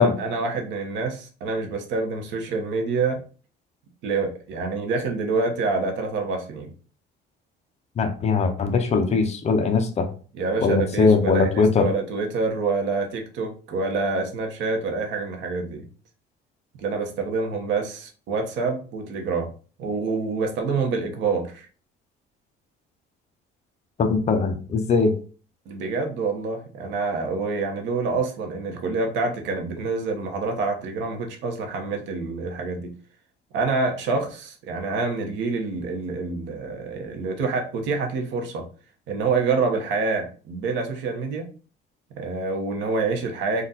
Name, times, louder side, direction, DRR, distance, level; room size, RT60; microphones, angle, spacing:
voice 1, 0.0-3.2 4.0-6.7 10.3-15.9 16.8-19.5 19.8-21.7 25.7-32.9 33.5-38.6 39.1-41.5 42.1-43.6, right 4 dB, 80° right, 4 dB, 1.0 m, -27 dB
voice 2, 8.0-10.1 10.6-11.9 24.0-25.1, left 4 dB, 35° left, 7 dB, 0.6 m, -20 dB
3.9 x 2.4 x 4.1 m, 0.39 s
cardioid pair, 140°, 19 cm